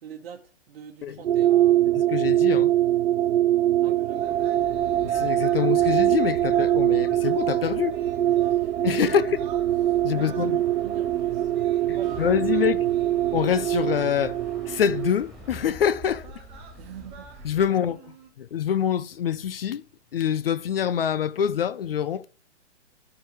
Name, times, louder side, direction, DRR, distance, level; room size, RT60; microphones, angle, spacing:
voice 1, 0.0-1.8 3.8-4.7 9.1-9.2 10.1-12.3 12.5-12.6 16.8-17.3, right 8 dB, 50° right, 1.2 m, -44 dB
sound 1, 1.2-15.1, right 12 dB, 70° right, 0.6 m, -23 dB
voice 2, 1.9-2.7 5.0-8.0 8.8-9.4 10.0-10.6 11.9-12.9 13.3-16.3 17.4-18.0 18.4-19.8 20.1-22.2, left 9 dB, 50° left, 0.5 m, -25 dB
sound 2, 4.0-14.4 15.4-15.6 16.1-18.3, right 6 dB, 15° right, 1.3 m, -50 dB
sound 3, 4.2-17.7, equal, ahead, 2.3 m, -46 dB
13.5 x 4.8 x 4.8 m
hypercardioid pair, 160°, 37 cm